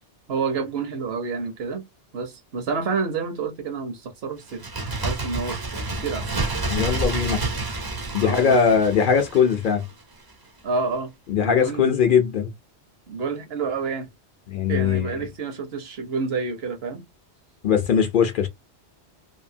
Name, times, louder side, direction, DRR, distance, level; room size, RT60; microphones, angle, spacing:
voice 1, 0.3-1.8 2.1-4.6 5.0-6.4 8.2-8.8 10.6-11.1 11.4-11.9 13.1-14.1 14.7-17.0, right 4 dB, 65° right, 1.0 m, -29 dB
Bird, 4.5-10.0 10.3-10.4, right 2 dB, 35° right, 0.4 m, -29 dB
voice 2, 6.7-7.5 8.1-9.9 11.3-12.5 14.5-15.1 17.6-18.5, left 7 dB, 55° left, 0.7 m, -20 dB
2.8 x 2.5 x 2.6 m
omnidirectional pair, 1.2 m